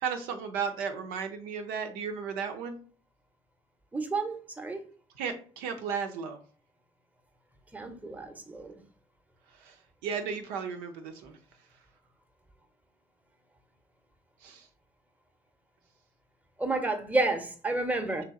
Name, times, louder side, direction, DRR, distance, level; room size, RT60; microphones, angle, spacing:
voice 1, 0.0-2.8 5.2-6.4 9.7-9.8 10.0-11.4 14.4-14.6, right 6 dB, 70° right, 0.6 m, -34 dB
voice 2, 3.9-4.8 7.7-8.8 16.6-18.2, right 2 dB, 10° right, 0.8 m, -30 dB
3.3 x 2.9 x 3.7 m
hypercardioid pair, 55°, 15 cm